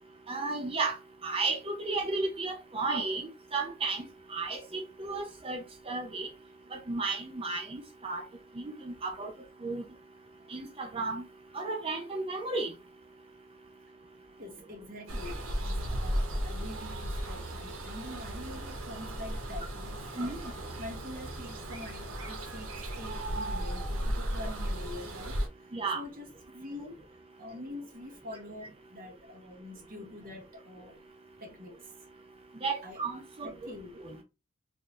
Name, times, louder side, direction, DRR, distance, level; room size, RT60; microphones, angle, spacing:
voice 1, 0.3-1.0 1.2-6.3 6.7-8.2 8.6-9.3 9.6-9.8 10.5-11.2 11.5-12.7 20.2-20.4 25.7-26.0 32.6-33.7 34.0-34.2, right 3 dB, 25° right, 0.5 m, -33 dB
voice 2, 14.4-25.7 25.9-26.3 26.5-26.9 27.4-31.1 31.4-31.9 32.8-33.0 33.4-34.2, left 1 dB, 40° right, 1.3 m, -45 dB
sound 1, 15.1-25.5, right 1 dB, 85° right, 1.1 m, -35 dB
3.9 x 2.6 x 3.0 m
head